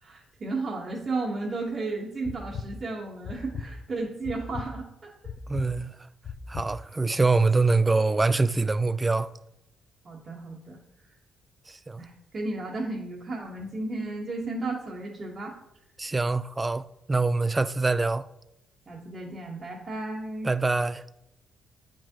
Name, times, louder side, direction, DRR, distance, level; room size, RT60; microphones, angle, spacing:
voice 1, 0.0-5.3 10.0-10.8 12.0-15.5 18.9-20.5, right 2 dB, 40° right, 1.2 m, -34 dB
sound 1, 2.2-2.7 3.2-3.7 4.2-4.7 5.2-5.7 6.2-6.7, left 6 dB, 55° left, 0.6 m, -36 dB
voice 2, 5.5-5.9 6.5-9.3 11.7-12.0 16.0-18.2 20.4-21.0, right 3 dB, 20° right, 0.3 m, -24 dB
9.2 x 4.7 x 3.0 m
cardioid pair, 90°, 0 cm